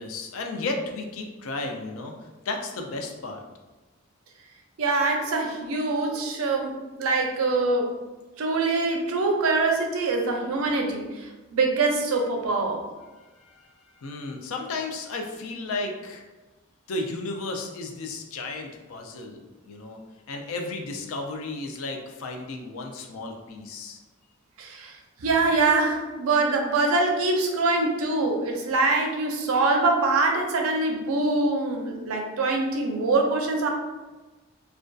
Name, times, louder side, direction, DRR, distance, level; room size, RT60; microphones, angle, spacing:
voice 1, 0.0-3.4 13.2-16.2 16.9-20.0 20.3-24.0, left 3 dB, 70° left, 3 dB, 0.4 m, -34 dB
voice 2, 4.8-7.9 8.4-12.8 24.6-33.7, right 3 dB, 75° right, 2 dB, 0.5 m, -24 dB
2.5 x 2.2 x 2.2 m, 1.2 s
head